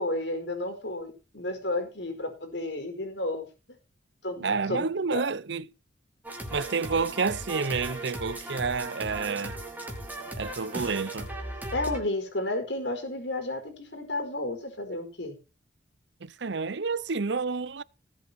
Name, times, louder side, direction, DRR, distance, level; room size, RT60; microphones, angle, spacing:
voice 1, 0.0-3.5 4.2-5.2 11.7-15.4, left 2 dB, 65° left, 4.8 m, -32 dB
voice 2, 4.4-5.6 6.5-9.6 10.4-11.3 16.2-17.8, right 4 dB, 65° right, 0.7 m, -29 dB
sound 1, 6.2-12.0, right 1 dB, 10° right, 3.6 m, -37 dB
18.5 x 8.1 x 4.3 m
head